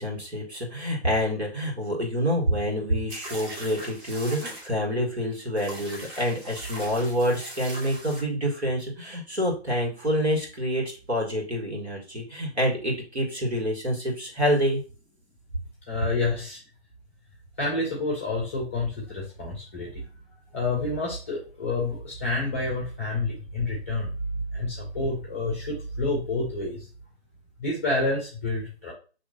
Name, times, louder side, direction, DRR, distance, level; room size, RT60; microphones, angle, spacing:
voice 1, 0.0-14.8, equal, 80° right, -2 dB, 1.8 m, -27 dB
sound 1, 3.1-4.7 5.6-8.2, right 1 dB, 20° right, 1.1 m, -40 dB
voice 2, 15.9-16.6 17.6-20.0 20.5-24.1 24.5-26.9 27.6-28.9, left 2 dB, 10° left, -2 dB, 0.6 m, -29 dB
5.9 x 2.9 x 2.7 m, 0.36 s
figure-of-eight pair, 140°, 33 cm